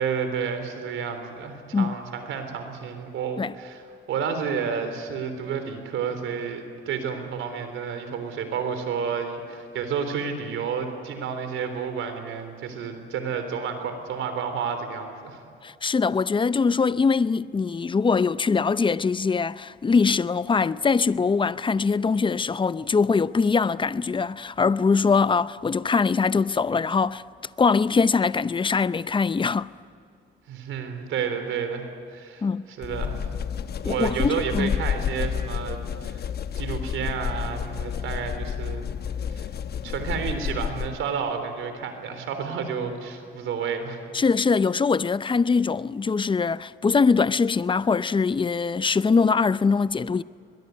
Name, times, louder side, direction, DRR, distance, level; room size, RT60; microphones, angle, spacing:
voice 1, 0.0-15.4 30.5-31.8 32.1-33.2 33.8-36.3 36.5-39.0 39.3-39.5 39.8-44.0, right 6 dB, 80° right, 3.7 m, -30 dB
voice 2, 15.6-27.2 27.6-29.7 32.4-32.7 33.8-34.7 44.1-50.2, left 5 dB, 25° left, 0.6 m, -22 dB
sound 1, 32.8-41.1, left 8 dB, 55° left, 1.0 m, -30 dB
22.5 x 21.5 x 9.5 m
cardioid pair, 90°, 20 cm